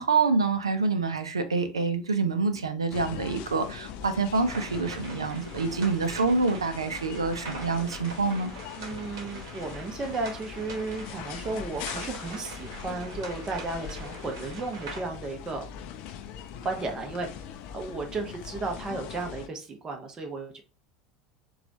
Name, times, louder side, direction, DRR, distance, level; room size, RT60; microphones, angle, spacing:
voice 1, 0.0-8.5, right 4 dB, 80° right, 0.4 m, -27 dB
sound 1, 2.9-19.5, left 8 dB, 55° left, 0.4 m, -41 dB
sound 2, 4.5-15.0, right 3 dB, 65° right, 1.0 m, -43 dB
voice 2, 8.8-15.7 16.6-17.5 17.7-20.6, right 3 dB, 25° right, 0.8 m, -34 dB
4.0 x 2.3 x 2.7 m
figure-of-eight pair, 70°, 3 cm